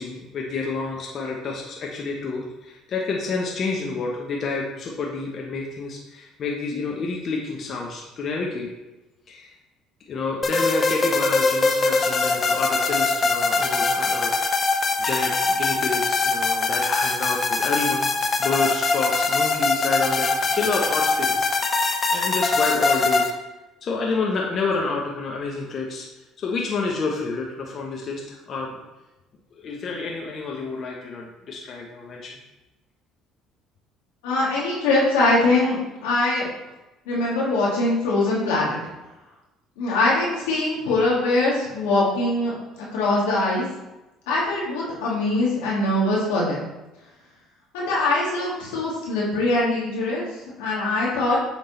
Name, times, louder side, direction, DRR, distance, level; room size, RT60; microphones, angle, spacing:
voice 1, 0.0-8.7 9.3-9.5 10.1-14.3 15.0-18.1 18.4-23.3 23.8-26.1 26.4-28.7 29.5-32.4, left 4 dB, 50° left, -1 dB, 1.0 m, -29 dB
sound 1, 10.4-23.3, left 3 dB, 35° left, 0.7 m, -22 dB
voice 2, 34.2-35.8 36.0-36.5 37.1-38.8 39.8-43.6 44.3-46.6 47.7-50.3 50.6-51.4, left 2 dB, 90° left, -4 dB, 1.9 m, -22 dB
7.2 x 3.7 x 3.9 m, 1.0 s
supercardioid pair, 80°, 0 cm